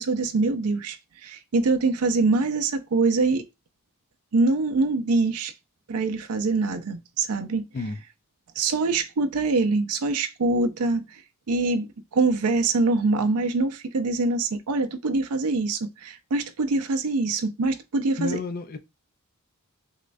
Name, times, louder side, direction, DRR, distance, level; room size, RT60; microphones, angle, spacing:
voice 1, 0.0-3.5 4.3-5.5 5.9-7.6 8.6-11.2 11.5-18.4, right 3 dB, 85° right, 0.5 m, -24 dB
voice 2, 18.2-18.8, left 3 dB, 40° left, 0.4 m, -31 dB
6.4 x 2.3 x 2.6 m
head